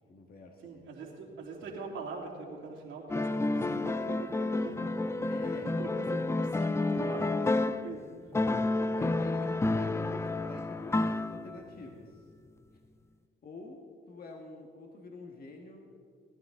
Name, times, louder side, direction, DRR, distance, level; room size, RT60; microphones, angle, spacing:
voice 1, 0.1-1.1 5.2-5.7 8.5-8.7 9.0-12.3 13.4-15.8, left 2 dB, 50° left, 2 dB, 1.6 m, -47 dB
voice 2, 0.6-5.2 5.5-8.1, right 4 dB, 85° right, -2 dB, 3.0 m, -43 dB
sound 1, 3.1-8.0 8.3-11.7, left 2 dB, 15° left, 0.4 m, -30 dB
18.5 x 11.0 x 3.7 m, 2.1 s
cardioid pair, 90°, 20 cm